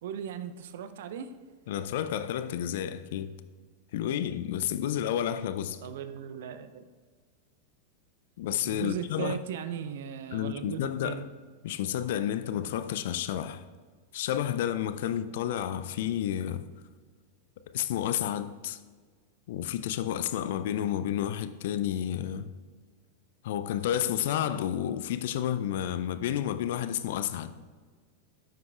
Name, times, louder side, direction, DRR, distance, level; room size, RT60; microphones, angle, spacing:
voice 1, 0.0-1.3 5.8-6.9 8.6-11.3, right 8 dB, 55° right, 0.5 m, -37 dB
voice 2, 1.7-3.4 3.9-5.8 8.4-9.4 10.3-11.2 11.6-13.6 14.1-16.6 17.7-18.8 19.5-22.5 23.4-27.5, left 10 dB, 55° left, 0.4 m, -31 dB
10.5 x 7.6 x 2.4 m
figure-of-eight pair, 90°, 0 cm